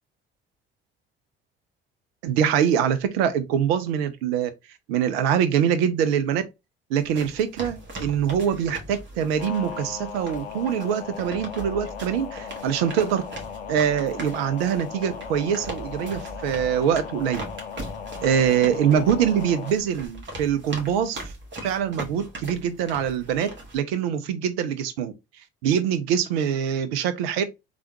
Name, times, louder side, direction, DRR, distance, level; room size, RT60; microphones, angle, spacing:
voice 1, 2.2-4.5 4.9-6.4 6.9-13.2 13.7-17.5 18.2-21.3 21.6-23.5 23.7-25.1 25.6-27.4, right 8 dB, 80° right, 0.5 m, -24 dB
sound 1, 7.0-23.8, right 1 dB, 35° right, 1.4 m, -39 dB
sound 2, 9.4-19.8, left 7 dB, 90° left, 0.5 m, -37 dB
3.4 x 2.3 x 2.9 m
hypercardioid pair, 50°, 30 cm